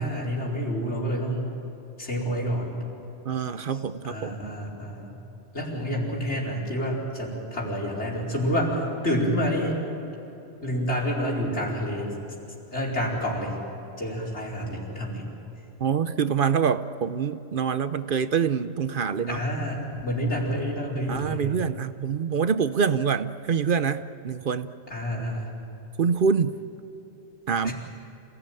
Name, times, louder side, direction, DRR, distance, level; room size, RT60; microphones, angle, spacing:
voice 1, 0.0-1.5 2.0-2.8 4.0-5.2 5.5-9.8 10.6-12.2 12.7-13.6 14.0-15.3 19.3-21.6 24.9-25.5 27.6-27.7, equal, 85° left, -2 dB, 5.0 m, -28 dB
voice 2, 3.3-4.5 15.8-19.4 21.1-24.7 26.0-26.5 27.5-27.7, right 6 dB, 55° right, 12 dB, 0.8 m, -25 dB
27.5 x 17.0 x 9.0 m, 3.0 s
omnidirectional pair, 1.1 m